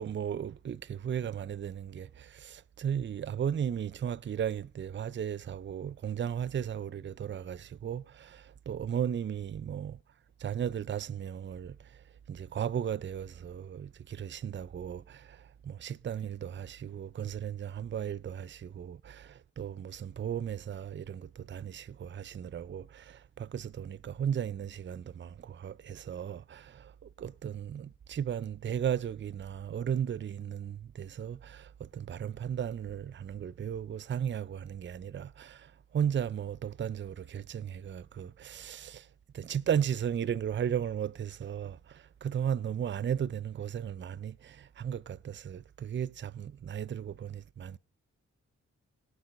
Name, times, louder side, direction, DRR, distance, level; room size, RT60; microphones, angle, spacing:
voice 1, 0.0-10.0 10.4-11.8 12.3-39.1 39.3-47.8, right 8 dB, 40° right, 0.5 m, -35 dB
18.0 x 6.6 x 5.2 m
supercardioid pair, 40°, 30 cm